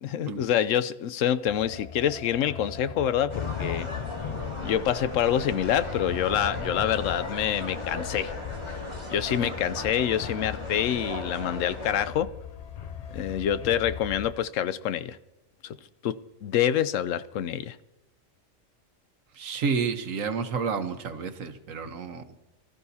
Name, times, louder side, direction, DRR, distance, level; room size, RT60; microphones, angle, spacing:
voice 1, 0.0-3.9 4.6-8.3 9.1-12.3 13.1-15.2 15.6-15.8 16.0-17.8, left 10 dB, 80° left, 1.0 m, -26 dB
sound 1, 1.5-14.3, left 9 dB, 55° left, 0.4 m, -38 dB
sound 2, 3.3-12.1, left 1 dB, 20° left, 2.3 m, -37 dB
voice 2, 9.4-9.8 19.3-22.2, right 5 dB, 90° right, 1.4 m, -31 dB
24.0 x 13.5 x 2.8 m
omnidirectional pair, 1.3 m